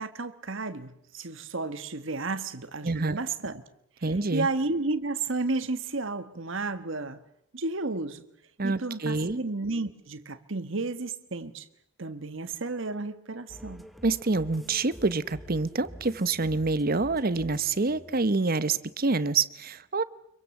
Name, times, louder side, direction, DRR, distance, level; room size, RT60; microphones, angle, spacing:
voice 1, 0.0-3.6 4.3-7.2 7.5-8.2 8.6-11.7 12.0-13.9, right 3 dB, 65° right, 1.5 m, -32 dB
voice 2, 2.8-3.2 4.0-4.5 8.6-9.4 14.0-20.0, right 3 dB, 45° right, 0.9 m, -27 dB
sound 1, 13.5-19.2, equal, ahead, 1.0 m, -47 dB
26.0 x 23.5 x 7.2 m
head